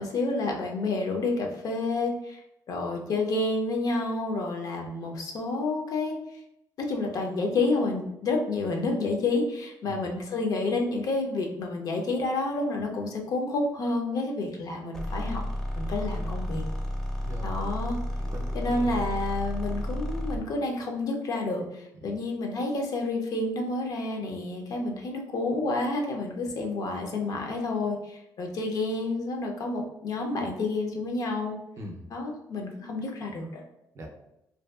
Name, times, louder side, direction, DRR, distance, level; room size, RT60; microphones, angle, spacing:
voice 1, 0.0-2.4 2.7-6.2 6.8-15.4 15.8-16.6 17.4-18.0 18.5-31.5 32.1-33.6, left 2 dB, 60° left, 1 dB, 0.5 m, -29 dB
sound 1, 14.9-20.5, equal, 5° left, 0.5 m, -32 dB
voice 2, 17.2-17.6 18.2-19.1 22.0-22.2 31.8-32.1 33.9-34.1, left 1 dB, 45° right, 2 dB, 0.5 m, -41 dB
2.6 x 2.2 x 2.3 m, 0.84 s
cardioid pair, 100°, 7 cm